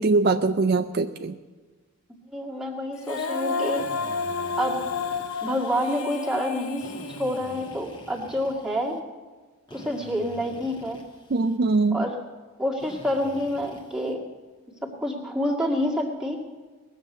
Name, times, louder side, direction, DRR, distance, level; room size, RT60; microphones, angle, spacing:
voice 1, 0.0-1.4 11.3-12.0, right 3 dB, 45° right, 8 dB, 0.4 m, -22 dB
voice 2, 2.3-3.8 4.6-4.8 5.4-9.0 9.7-11.0 11.9-12.2 12.6-14.2 15.0-16.4, equal, 5° right, -3 dB, 1.9 m, -28 dB
Female singing, 2.9-8.1, left 4 dB, 75° left, 0.8 m, -31 dB
Drill, 3.7-6.0 6.8-9.0 9.7-11.6 12.8-14.1, left 1 dB, 20° left, 1.5 m, -46 dB
20.0 x 7.2 x 8.0 m, 1.4 s
head